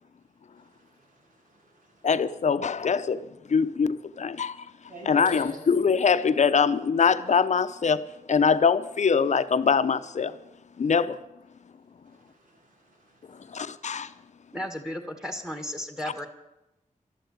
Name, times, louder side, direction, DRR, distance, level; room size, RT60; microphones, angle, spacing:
voice 1, 0.6-1.1 1.4-2.1 4.9-5.6 12.1-13.5, equal, 85° right, 5.6 m, -45 dB
voice 2, 2.0-4.7 5.0-10.4 10.8-11.2 13.5-14.1, left 6 dB, 60° left, 0.7 m, -23 dB
voice 3, 14.5-16.3, equal, 5° right, 1.9 m, -34 dB
12.5 x 11.5 x 8.4 m
wide cardioid pair, 120°, 14 cm